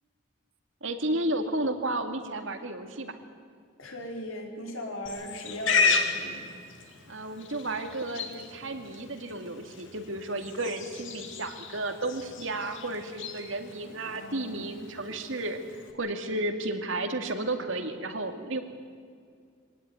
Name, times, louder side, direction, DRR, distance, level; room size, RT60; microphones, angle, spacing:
voice 1, 0.8-3.1 7.1-15.6 15.9-18.6, right 2 dB, 70° right, 6 dB, 2.3 m, -32 dB
voice 2, 3.8-6.4, equal, 85° left, 1 dB, 4.6 m, -37 dB
Livestock farm animals working animals, 5.1-15.9, left 4 dB, 70° left, 2.5 m, -34 dB
24.0 x 17.5 x 9.6 m, 2.2 s
head